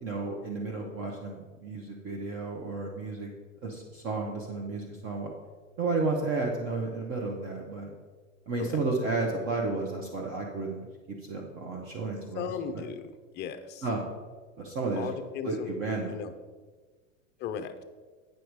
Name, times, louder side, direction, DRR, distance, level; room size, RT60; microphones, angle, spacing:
voice 1, 0.0-3.3 3.6-5.3 5.8-7.9 8.5-10.9 11.3-12.5 12.7-12.8 13.8-14.0 14.6-15.1 15.4-16.1, right 3 dB, 35° right, 1 dB, 1.0 m, -32 dB
voice 2, 12.3-13.1 13.3-13.9 15.0-15.7 16.1-16.3 17.4-17.8, left 7 dB, 25° left, 8 dB, 0.5 m, -36 dB
9.3 x 5.0 x 4.7 m, 1.4 s
supercardioid pair, 130°, 39 cm